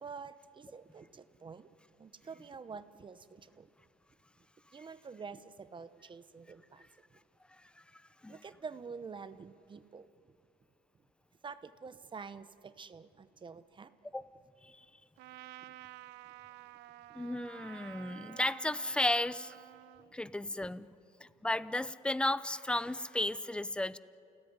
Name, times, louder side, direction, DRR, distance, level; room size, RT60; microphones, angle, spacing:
voice 1, 0.0-1.7 2.0-3.7 4.7-7.2 8.3-10.1 11.4-13.9 20.1-20.2, right 5 dB, 30° right, 12 dB, 0.9 m, -48 dB
voice 2, 7.9-8.4 14.1-14.2 14.6-14.9 17.1-19.6 20.1-20.9 21.4-24.0, left 1 dB, 5° left, 16 dB, 0.6 m, -34 dB
Trumpet, 15.2-20.1, right 15 dB, 90° right, 0.6 m, -51 dB
29.0 x 17.5 x 9.6 m, 2.6 s
cardioid pair, 110°, 17 cm